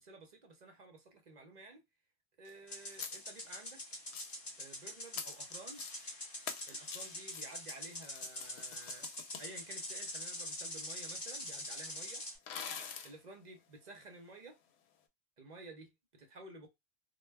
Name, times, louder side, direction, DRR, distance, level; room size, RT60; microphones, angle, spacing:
voice 1, 0.0-1.8 2.4-3.8 4.6-5.8 6.7-9.1 9.4-12.2 13.0-14.6 15.4-16.7, right 2 dB, 50° right, 0.6 m, -53 dB
sound 1, 2.4-2.5 2.9-3.6 4.0-4.5 5.1-6.1 6.4-10.3 11.2-11.3 11.5-11.6 12.5-13.2, left 7 dB, 75° left, 0.8 m, -46 dB
sound 2, 2.7-12.4, left 1 dB, 25° left, 0.7 m, -44 dB
2.2 x 2.1 x 3.2 m
omnidirectional pair, 1.1 m